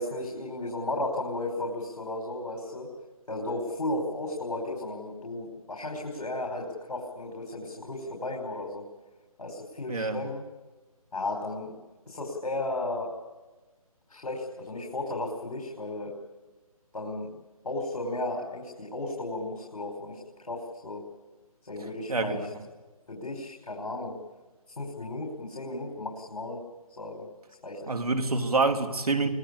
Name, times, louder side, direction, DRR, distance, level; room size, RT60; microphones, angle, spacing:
voice 1, 0.0-2.9 3.3-8.8 9.4-10.4 11.1-11.7 12.1-13.1 14.1-16.1 16.9-17.3 17.6-21.0 21.6-22.5 23.1-24.2 24.8-26.6 26.9-27.3 27.6-27.9, left 2 dB, 80° left, 0 dB, 5.2 m, -34 dB
voice 2, 9.9-10.2 22.1-22.4 27.9-29.3, right 3 dB, 80° right, 5 dB, 3.3 m, -26 dB
24.0 x 19.5 x 8.6 m, 1.2 s
hypercardioid pair, 165°, 19 cm